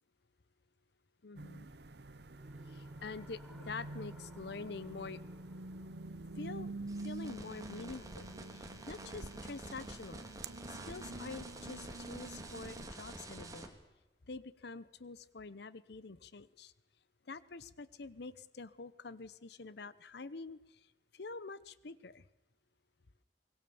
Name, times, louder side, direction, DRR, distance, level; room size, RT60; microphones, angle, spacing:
voice 1, 1.2-1.7 2.7-5.2 6.4-6.7 7.0-10.3 10.7-13.7 14.3-16.7 17.3-20.8 21.1-22.2, left 4 dB, 65° left, 17 dB, 0.8 m, -46 dB
sound 1, 1.4-12.9, right 2 dB, 65° right, 1.0 m, -47 dB
sound 2, 1.6-6.7, equal, 5° right, 3.0 m, -63 dB
sound 3, 6.9-13.7, right 2 dB, 20° right, 3.0 m, -48 dB
24.0 x 21.0 x 7.1 m, 1.1 s
head